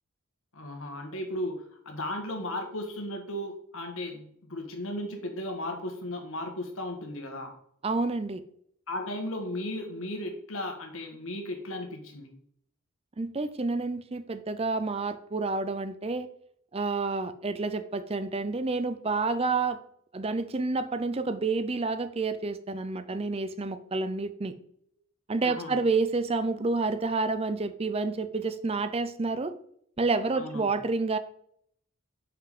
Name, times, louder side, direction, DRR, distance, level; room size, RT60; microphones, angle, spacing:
voice 1, 0.5-7.5 8.9-12.3 25.4-25.8 30.3-30.7, left 1 dB, 65° left, 4 dB, 1.6 m, -35 dB
voice 2, 7.8-8.4 13.2-16.3 16.7-19.8 20.1-24.5 25.3-29.5 30.0-31.2, right 3 dB, 25° right, 11 dB, 0.5 m, -29 dB
5.8 x 5.3 x 5.2 m, 0.67 s
head